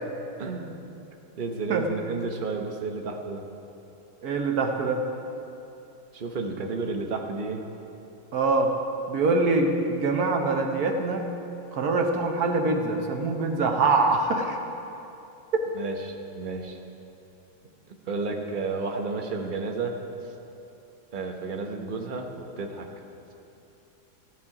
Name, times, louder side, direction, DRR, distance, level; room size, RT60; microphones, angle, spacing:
voice 1, 0.4-0.9 1.4-3.4 6.1-7.6 15.7-16.8 17.9-20.0 20.2-20.3 21.1-22.9, right 3 dB, 40° right, 2 dB, 0.7 m, -32 dB
voice 2, 4.2-5.0 8.3-8.7 9.1-11.3 11.7-14.6, right 3 dB, 55° right, 3 dB, 1.3 m, -24 dB
16.0 x 10.5 x 4.8 m, 2.9 s
omnidirectional pair, 2.2 m